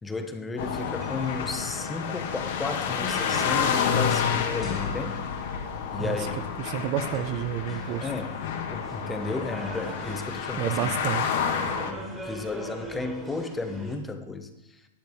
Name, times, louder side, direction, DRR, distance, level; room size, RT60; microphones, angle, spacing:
voice 1, 0.0-5.3 5.9-6.4 8.0-11.0 11.6-14.8, left 3 dB, 10° left, 7 dB, 0.7 m, -34 dB
sound 1, 0.6-11.9, left 7 dB, 60° left, 1.3 m, -29 dB
sound 2, 0.6-14.0, equal, 5° right, 1.7 m, -42 dB
voice 2, 6.6-8.1 10.6-11.5, right 10 dB, 35° right, 11 dB, 0.5 m, -30 dB
11.5 x 9.5 x 3.5 m, 0.97 s
hypercardioid pair, 150°, 0 cm